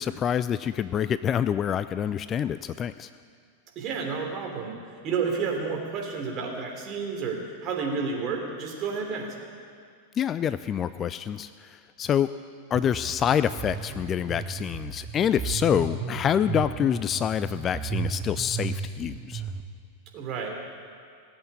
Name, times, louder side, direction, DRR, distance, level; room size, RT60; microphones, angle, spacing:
voice 1, 0.0-3.1 10.1-12.3 12.7-19.4, left 9 dB, 25° left, 14 dB, 0.4 m, -26 dB
voice 2, 3.7-4.7 5.0-9.4 20.1-20.5, right 5 dB, 35° right, 1 dB, 3.1 m, -30 dB
sound 1, 12.7-19.6, right 6 dB, 20° right, 1.3 m, -34 dB
17.5 x 8.1 x 8.5 m, 2.3 s
figure-of-eight pair, 90°, 0 cm